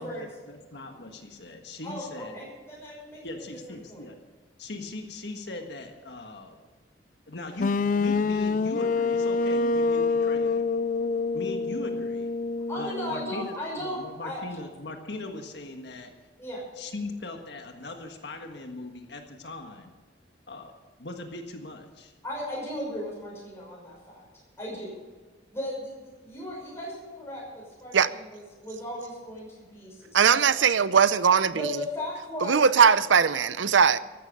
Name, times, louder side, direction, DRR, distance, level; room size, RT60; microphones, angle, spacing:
voice 1, 0.0-2.5 3.2-4.2 4.6-6.6 7.3-10.7 11.3-12.3 12.8-16.1 16.8-19.9 20.5-20.7 21.0-22.1, left 2 dB, 65° left, 4 dB, 1.6 m, -39 dB
voice 2, 1.8-3.2 3.9-4.0 12.7-14.4 16.4-16.6 22.2-24.2 24.6-25.0 25.5-30.6 31.5-32.6, left 1 dB, 15° left, -4 dB, 5.8 m, -36 dB
sound 1, 7.6-13.5, left 4 dB, 45° left, 0.3 m, -26 dB
voice 3, 30.1-31.7 32.4-34.0, right 6 dB, 90° right, 16 dB, 0.6 m, -20 dB
15.0 x 12.5 x 5.3 m, 1.3 s
head